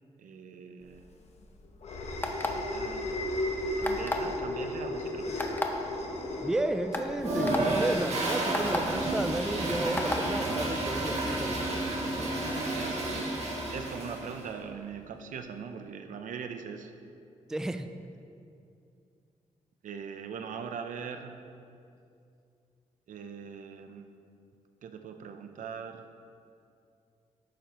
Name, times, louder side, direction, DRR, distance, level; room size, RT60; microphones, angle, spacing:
voice 1, 0.2-1.0 2.5-3.2 3.8-5.4 12.3-16.9 19.8-21.3 23.1-24.1 24.8-26.1, right 6 dB, 85° right, 7 dB, 0.7 m, -41 dB
sound 1, 0.9-9.8, left 1 dB, 55° left, 1.1 m, -36 dB
sound 2, 2.2-2.7 3.8-4.3 5.4-5.7 6.4-6.5 6.9-7.1 7.5-7.6 8.5-8.8 10.0-10.2, left 2 dB, 15° left, 0.7 m, -31 dB
voice 2, 6.4-11.6 17.5-17.9, right 1 dB, 5° right, 8 dB, 0.3 m, -32 dB
Toilet flush, 7.2-14.4, right 2 dB, 55° right, 1.9 m, -31 dB
11.5 x 9.2 x 3.0 m, 2.5 s
wide cardioid pair, 160°, 13 cm